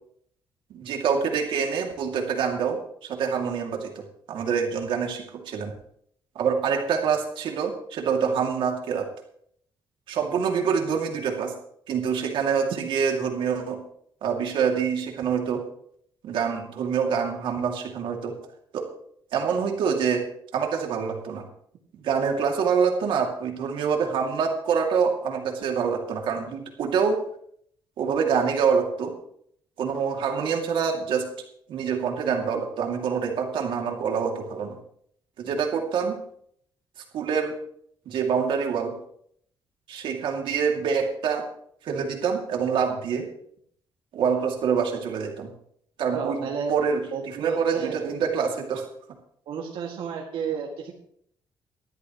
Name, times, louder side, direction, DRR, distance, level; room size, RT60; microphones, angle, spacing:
voice 1, 0.7-5.7 6.3-9.1 10.1-11.5 11.9-13.8 14.2-15.6 16.2-18.3 18.7-18.9 19.3-20.3 20.5-21.4 22.0-27.2 28.0-29.1 29.8-31.3 31.7-34.8 35.4-36.2 37.1-37.5 38.1-38.9 39.9-41.4 41.8-43.3 44.1-45.5 46.0-48.8, right 6 dB, 75° right, 2 dB, 2.6 m, -26 dB
voice 2, 46.1-46.7 47.1-48.2 49.5-50.9, right 6 dB, 90° right, -1 dB, 2.2 m, -32 dB
20.0 x 13.0 x 3.1 m, 0.66 s
cardioid pair, 175°, 9 cm